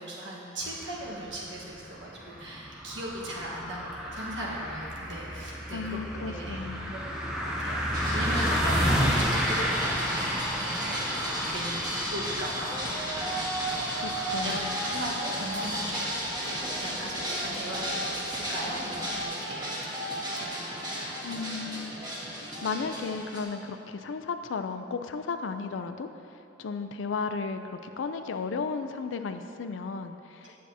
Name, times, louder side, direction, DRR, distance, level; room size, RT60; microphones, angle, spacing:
voice 1, 0.0-6.6 7.3-7.8 8.1-10.3 10.6-14.0 14.4-20.0 20.4-20.8 21.0-21.1 30.4-30.5, right 1 dB, 70° right, -4 dB, 1.4 m, -38 dB
sound 1, 0.6-19.2, equal, 5° right, 0.7 m, -32 dB
voice 2, 5.7-6.9 14.0-14.8 21.2-22.0 22.3-30.6, left 4 dB, 80° left, 8 dB, 0.4 m, -34 dB
sound 2, 7.9-23.4, equal, 25° right, 1.5 m, -34 dB
9.3 x 7.4 x 2.8 m, 3.0 s
head